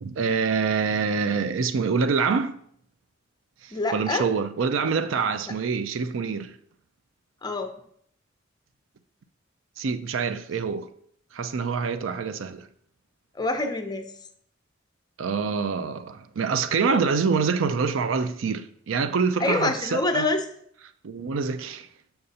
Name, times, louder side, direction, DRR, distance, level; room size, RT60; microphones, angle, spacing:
voice 1, 0.0-2.6 3.6-6.5 9.8-10.9 11.3-12.7 15.2-20.3 21.0-21.9, right 5 dB, 85° right, 0.4 m, -26 dB
voice 2, 3.7-4.3 7.4-7.7 13.4-14.1 16.9-17.0 19.4-20.4, left 2 dB, 20° left, 0.6 m, -26 dB
6.5 x 5.8 x 2.8 m
head